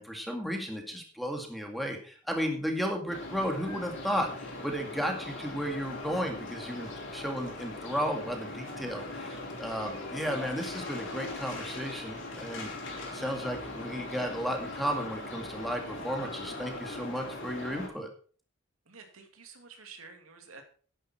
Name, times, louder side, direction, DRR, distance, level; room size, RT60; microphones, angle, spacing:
voice 1, 0.0-18.1, equal, ahead, 2 dB, 2.1 m, -34 dB
sound 1, 3.1-17.9, left 2 dB, 60° left, 4.4 m, -40 dB
voice 2, 18.9-20.6, right 5 dB, 90° right, 5 dB, 2.5 m, -50 dB
11.0 x 10.0 x 4.4 m, 0.42 s
head